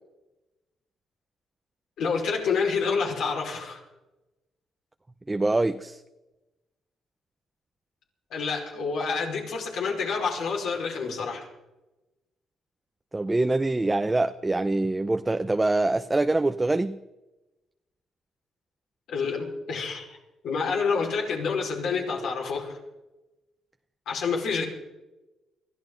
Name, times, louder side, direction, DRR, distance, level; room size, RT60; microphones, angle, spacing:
voice 1, 2.0-3.8 8.3-11.4 19.1-20.0 20.4-22.8 24.0-24.6, left 5 dB, 75° left, 5.0 m, -28 dB
voice 2, 5.3-6.0 13.1-17.0, right 2 dB, 15° right, 0.7 m, -24 dB
23.0 x 14.5 x 4.0 m
cardioid pair, 90°, 0 cm